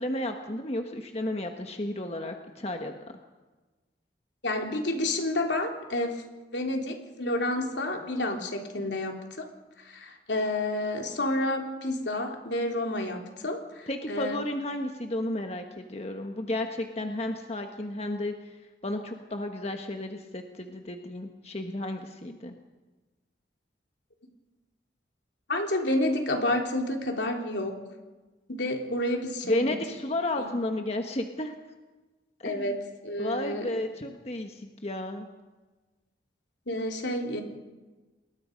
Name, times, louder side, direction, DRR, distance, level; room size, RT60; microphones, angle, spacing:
voice 1, 0.0-2.9 13.9-18.3 18.8-22.6 29.5-31.5 32.4-32.8 33.2-35.3, left 1 dB, 35° left, 4 dB, 1.4 m, -32 dB
voice 2, 4.4-6.2 6.5-9.5 9.8-14.4 25.5-27.7 28.5-29.7 30.4-30.5 32.4-33.8 36.7-37.4, left 1 dB, 75° left, 3 dB, 3.3 m, -30 dB
28.5 x 21.0 x 5.3 m, 1.2 s
head